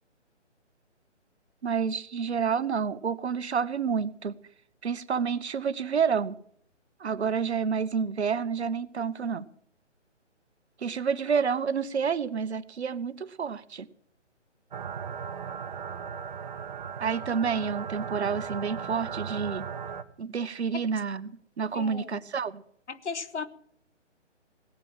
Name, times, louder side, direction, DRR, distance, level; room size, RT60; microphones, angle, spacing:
voice 1, 1.6-4.4 4.8-6.4 7.0-9.5 10.8-13.9 17.0-19.7 20.2-22.6, right 6 dB, 65° right, 17 dB, 1.0 m, -29 dB
sound 1, 14.7-20.0, right 7 dB, 40° right, 0.9 m, -37 dB
voice 2, 21.7-22.2 22.9-23.5, left 5 dB, 70° left, 13 dB, 1.4 m, -36 dB
18.0 x 8.7 x 7.4 m, 0.63 s
figure-of-eight pair, 145°, 36 cm